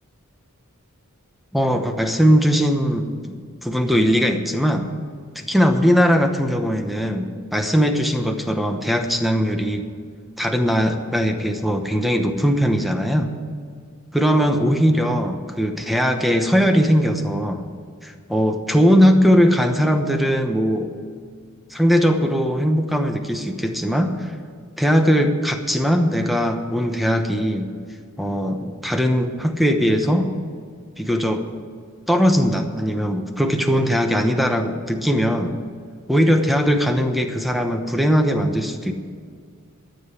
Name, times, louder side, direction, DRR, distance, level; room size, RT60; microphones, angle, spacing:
voice 1, 1.5-3.4 3.6-4.9 5.3-9.9 10.4-13.3 14.1-17.6 18.0-20.9 21.7-24.3 24.8-27.7 28.2-30.3 31.0-31.5 32.1-35.6 36.1-38.9, equal, ahead, 5 dB, 0.9 m, -19 dB
13.0 x 7.9 x 8.3 m, 2.1 s
head